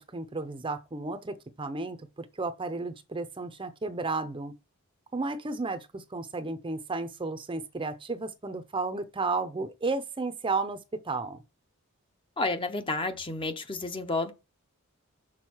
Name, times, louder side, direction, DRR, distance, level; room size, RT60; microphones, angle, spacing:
voice 1, 0.0-4.5 5.1-10.8 11.0-11.4, right 3 dB, 25° right, 0.6 m, -33 dB
voice 2, 12.4-14.3, left 2 dB, 25° left, 0.7 m, -30 dB
6.4 x 3.7 x 6.1 m
head